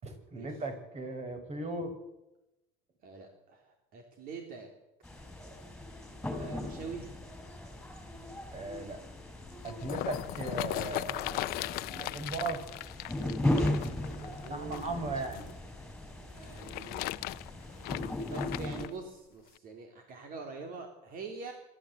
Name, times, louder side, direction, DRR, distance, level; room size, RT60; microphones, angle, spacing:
voice 1, 0.0-2.0 8.5-9.0 9.6-12.6 14.5-15.5, right 2 dB, 40° right, 7 dB, 6.0 m, -37 dB
voice 2, 3.0-4.7 6.4-7.2 14.1-15.2 16.3-17.1 18.3-21.5, right 4 dB, 60° right, 3 dB, 3.7 m, -44 dB
sound 1, 5.0-18.9, left 1 dB, 5° left, 5.4 m, -37 dB
sound 2, 9.4-15.5 16.4-18.9 19.6-19.7, left 19 dB, 65° left, 0.7 m, -38 dB
26.0 x 13.5 x 8.3 m, 0.97 s
supercardioid pair, 100°, 17 cm